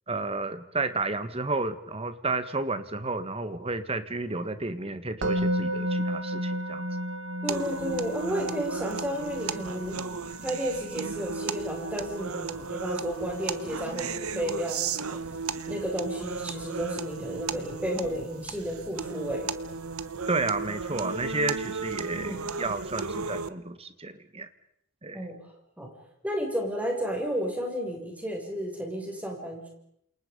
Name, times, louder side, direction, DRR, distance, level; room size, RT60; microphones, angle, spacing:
voice 1, 0.1-6.9 20.3-24.5 25.0-25.2, right 3 dB, 25° right, 11 dB, 1.6 m, -31 dB
Musical instrument, 5.2-16.3, equal, 55° right, 1.8 m, -35 dB
voice 2, 7.4-10.0 10.4-15.2 15.7-19.5 22.2-22.5 25.1-25.3 25.8-25.9 26.2-29.7, equal, 5° right, 0 dB, 6.7 m, -32 dB
sound 1, 7.5-23.5, right 5 dB, 75° right, 1.2 m, -35 dB
28.5 x 28.0 x 5.4 m, 0.75 s
head